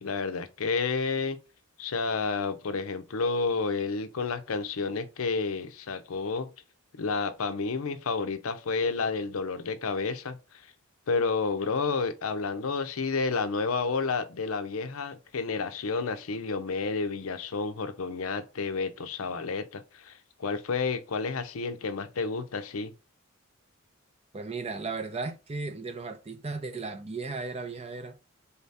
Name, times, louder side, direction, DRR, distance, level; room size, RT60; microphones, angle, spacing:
voice 1, 0.0-1.4 1.8-6.5 6.9-10.7 11.1-22.9, left 4 dB, 80° left, 0.6 m, -30 dB
voice 2, 24.3-28.2, right 3 dB, 30° right, 0.5 m, -35 dB
4.2 x 2.8 x 3.3 m
head